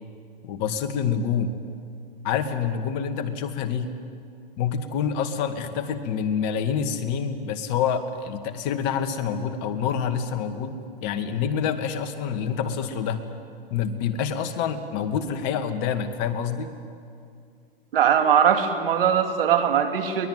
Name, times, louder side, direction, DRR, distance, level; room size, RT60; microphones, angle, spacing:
voice 1, 0.4-1.6 2.2-3.9 4.6-13.2 13.7-16.7, left 7 dB, 40° left, 8 dB, 2.1 m, -27 dB
voice 2, 17.9-20.3, right 8 dB, 65° right, 6 dB, 2.8 m, -20 dB
23.0 x 20.5 x 9.4 m, 2.3 s
hypercardioid pair, 125°, 30 cm